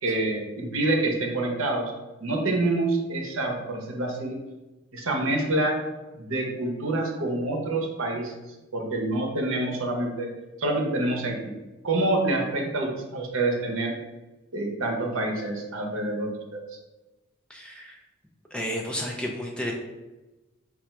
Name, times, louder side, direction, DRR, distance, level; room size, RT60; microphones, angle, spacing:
voice 1, 0.0-1.9 2.2-4.4 4.9-5.8 6.1-8.3 8.7-10.3 10.6-11.5 11.8-13.9 14.5-16.6, right 2 dB, 80° right, 1 dB, 0.8 m, -27 dB
voice 2, 17.5-18.0 18.5-19.7, equal, 5° left, -1 dB, 0.4 m, -32 dB
3.4 x 2.4 x 4.4 m, 1.1 s
head